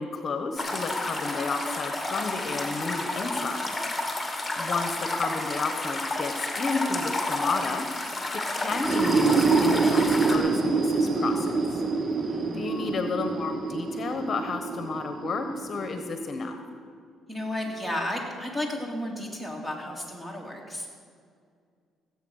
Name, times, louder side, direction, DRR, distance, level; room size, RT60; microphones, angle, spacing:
voice 1, 0.0-3.8 4.6-7.9 8.5-11.8 12.5-16.6, left 4 dB, 45° left, 7 dB, 1.1 m, -32 dB
sound 1, 0.6-10.4, left 2 dB, 10° left, 2.2 m, -31 dB
sound 2, 8.7-16.4, right 4 dB, 40° right, 1.1 m, -26 dB
voice 2, 12.2-12.7 17.3-20.9, left 1 dB, 10° right, 0 dB, 3.1 m, -33 dB
16.5 x 8.2 x 6.4 m, 2.2 s
cardioid pair, 80°, 0 cm